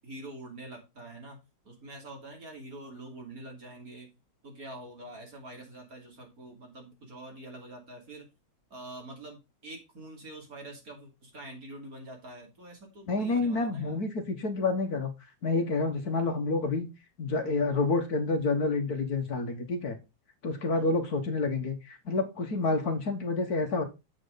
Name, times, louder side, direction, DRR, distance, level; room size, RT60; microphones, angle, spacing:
voice 1, 0.0-1.4 1.6-4.1 4.4-8.3 8.7-14.0 20.7-20.9, right 1 dB, 50° right, 3.3 m, -45 dB
voice 2, 13.1-15.1 15.4-16.9 17.2-20.0 20.4-23.8, left 3 dB, 55° left, 1.7 m, -28 dB
7.6 x 7.6 x 3.9 m
omnidirectional pair, 2.0 m